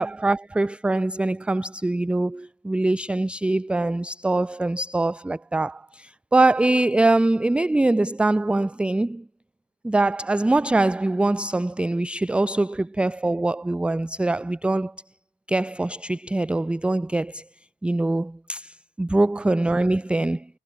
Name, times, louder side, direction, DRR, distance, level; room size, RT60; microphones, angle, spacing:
voice 1, 0.0-9.2 9.8-14.9 15.5-17.4 17.8-20.5, right 2 dB, 5° right, 0.3 m, -23 dB
cardioid pair, 90°, 20 cm